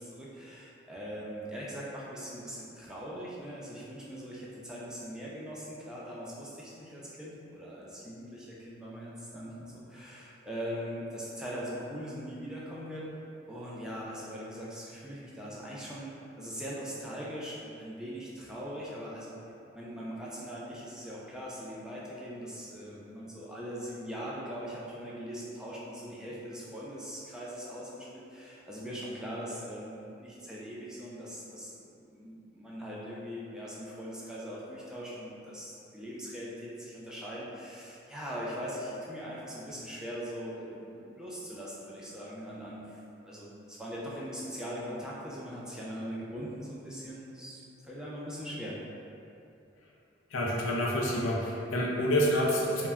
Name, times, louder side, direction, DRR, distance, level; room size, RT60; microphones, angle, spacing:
voice 1, 0.0-19.3 19.7-48.7, equal, 5° right, -7 dB, 0.4 m, -41 dB
voice 2, 50.3-52.9, equal, 85° left, -2 dB, 0.5 m, -28 dB
2.2 x 2.1 x 3.4 m, 2.6 s
head